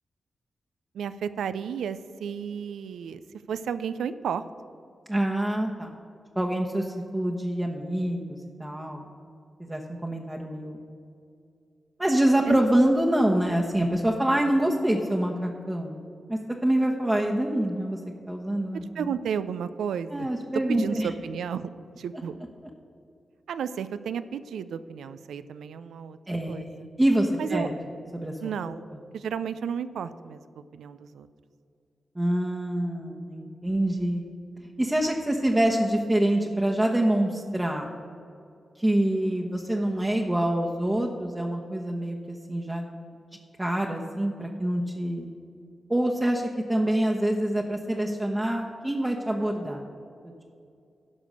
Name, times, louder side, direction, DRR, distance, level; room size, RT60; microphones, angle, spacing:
voice 1, 0.9-3.2 3.5-4.4 12.5-12.6 19.0-20.3 20.7-21.7 22.0-22.4 23.5-26.2 26.5-26.9 27.4-27.7 28.4-28.9 29.1-31.3, right 7 dB, 85° right, 13 dB, 0.4 m, -32 dB
voice 2, 5.1-5.9 6.3-9.0 9.6-10.8 12.0-16.0 16.3-18.0 18.3-19.1 20.1-21.1 26.3-27.7 28.1-28.3 32.1-34.2 34.8-37.9 38.8-42.9 43.6-45.3 45.9-49.8, right 1 dB, 20° right, -1 dB, 1.0 m, -26 dB
12.5 x 5.0 x 6.5 m, 2.5 s
supercardioid pair, 40°, 0 cm